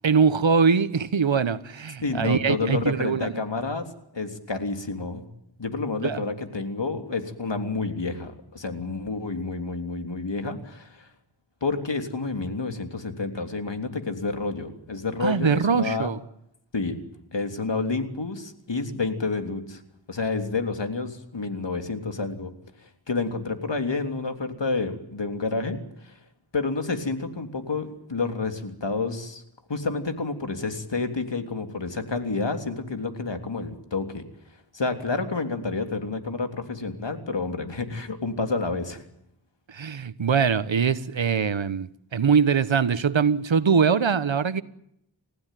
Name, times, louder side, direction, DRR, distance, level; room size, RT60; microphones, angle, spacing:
voice 1, 0.0-3.3 6.0-6.2 15.2-16.2 39.7-44.6, right 6 dB, 75° right, 1.3 m, -22 dB
voice 2, 2.0-3.9 4.1-5.2 5.6-11.1 11.6-16.1 16.7-17.0 17.3-19.8 20.1-22.5 22.8-26.2 26.5-29.4 29.7-34.2 34.7-39.0, left 3 dB, 65° left, 3.4 m, -29 dB
30.0 x 15.5 x 9.2 m
wide cardioid pair, 60°, 46 cm